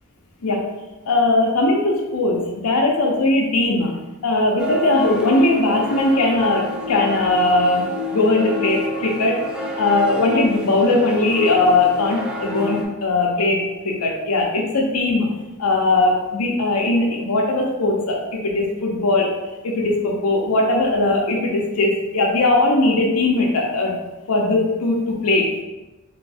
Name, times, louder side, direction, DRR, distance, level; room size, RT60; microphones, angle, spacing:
voice 1, 1.1-3.9 4.2-9.4 9.8-15.3 15.6-18.2 18.4-19.3 19.6-23.9 24.3-25.5, left 2 dB, 80° left, -1 dB, 0.6 m, -19 dB
sound 1, 4.6-12.9, left 1 dB, 5° right, 0.5 m, -29 dB
3.4 x 3.0 x 3.4 m, 1.1 s
head